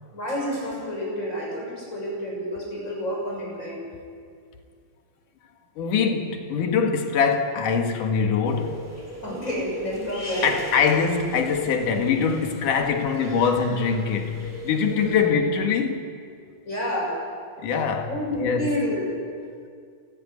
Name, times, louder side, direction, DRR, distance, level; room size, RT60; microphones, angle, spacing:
voice 1, 0.1-3.8 9.2-10.6 14.9-15.2 16.7-17.2 18.1-19.1, equal, 20° left, 7.4 m, -29 dB
voice 2, 5.8-8.9 10.4-16.1 17.6-18.1 18.4-18.7, left 6 dB, 80° left, 3.2 m, -23 dB
sound 1, 8.4-15.2, equal, 5° right, 4.6 m, -38 dB
27.5 x 14.0 x 9.6 m
omnidirectional pair, 3.7 m